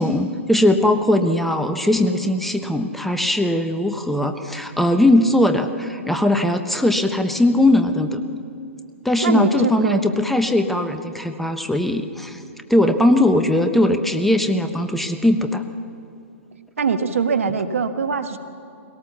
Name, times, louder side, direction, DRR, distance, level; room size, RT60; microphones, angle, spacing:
voice 1, 0.0-8.2 9.0-12.4 12.7-15.7, left 1 dB, ahead, 7 dB, 1.0 m, -19 dB
voice 2, 9.2-10.0 16.8-18.4, right 5 dB, 75° right, 8 dB, 1.5 m, -22 dB
22.0 x 17.5 x 7.0 m, 2.5 s
hypercardioid pair, 125°, 7 cm